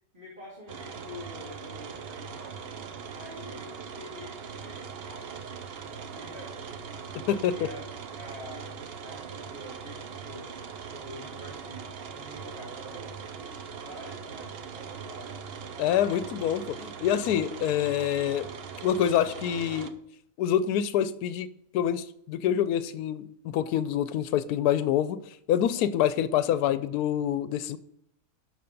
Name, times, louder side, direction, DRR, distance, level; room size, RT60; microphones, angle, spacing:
voice 1, 0.1-2.7 3.1-6.8 7.2-7.8 8.2-8.7 9.0-10.5 10.9-15.5 16.1-16.3, left 1 dB, 30° right, -6 dB, 2.8 m, -47 dB
sound 1, 0.7-19.9, right 6 dB, 55° right, 0.7 m, -41 dB
voice 2, 7.3-7.7 15.8-18.5 18.8-19.9 20.4-21.5 21.7-25.2 25.5-27.8, left 10 dB, 80° left, 14 dB, 1.1 m, -26 dB
12.5 x 4.8 x 5.3 m, 0.74 s
omnidirectional pair, 1.7 m